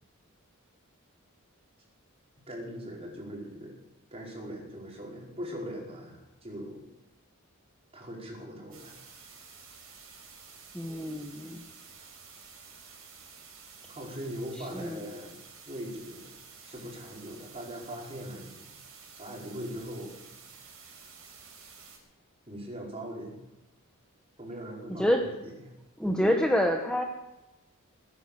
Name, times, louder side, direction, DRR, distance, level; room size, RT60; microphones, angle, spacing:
voice 1, 2.5-3.7 4.1-6.8 7.9-9.0 13.9-15.4 15.6-16.3 16.6-18.7 19.1-20.2 22.5-23.4 24.4-25.7, equal, 30° right, -2 dB, 4.9 m, -40 dB
sound 1, 8.7-22.0, right 5 dB, 85° right, 4.9 m, -51 dB
voice 2, 10.7-11.6 14.7-15.0 25.0-25.2 26.0-27.0, equal, 5° left, 2 dB, 1.1 m, -27 dB
19.5 x 10.0 x 6.9 m, 0.98 s
head